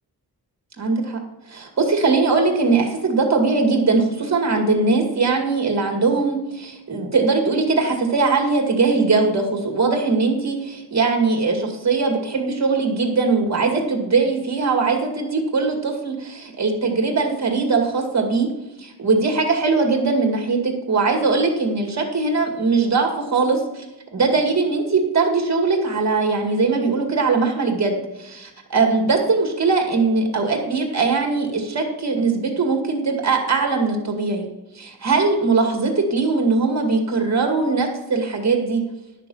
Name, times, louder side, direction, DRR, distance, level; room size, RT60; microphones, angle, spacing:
voice 1, 0.8-1.2 1.5-18.5 18.8-23.8 24.1-34.5 34.8-38.8, right 4 dB, 45° right, 2 dB, 2.2 m, -20 dB
10.5 x 6.7 x 5.5 m, 0.97 s
wide cardioid pair, 125°, 38 cm